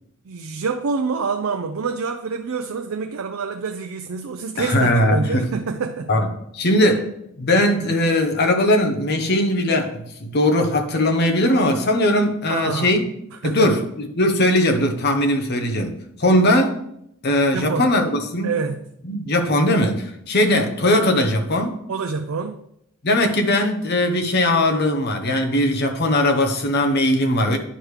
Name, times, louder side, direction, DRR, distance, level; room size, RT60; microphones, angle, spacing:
voice 1, 0.3-6.1 12.5-13.0 13.4-13.7 17.5-17.9 18.4-18.8 21.9-22.6, right 4 dB, 80° right, 0.5 m, -26 dB
voice 2, 4.6-5.5 6.1-6.3 6.5-7.1 7.4-13.0 13.4-15.9 16.2-16.8 17.2-18.5 19.0-21.8 23.0-27.6, left 1 dB, 50° left, 0.9 m, -19 dB
10.0 x 4.8 x 3.3 m
head